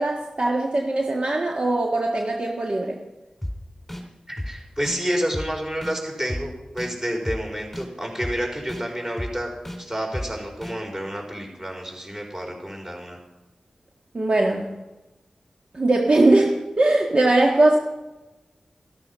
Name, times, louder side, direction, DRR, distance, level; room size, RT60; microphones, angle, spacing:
voice 1, 0.0-3.0 14.1-14.7 15.7-17.8, right 2 dB, 50° right, 0 dB, 1.6 m, -20 dB
sound 1, 3.4-3.5 3.9-4.0 4.4-4.5 4.8-5.0 5.3-5.5 5.8-5.9 6.3-6.4 6.8-6.9 7.3-7.4 7.7-7.9 8.2-8.3 8.7-8.8 9.2-9.3 9.7-9.8 10.1-10.3 10.6-10.7, left 1 dB, 5° left, 3.0 m, -31 dB
voice 2, 4.3-9.5 9.8-13.2, equal, 20° right, 1 dB, 4.7 m, -29 dB
13.5 x 13.0 x 5.6 m, 1.1 s
cardioid pair, 55°, 2 cm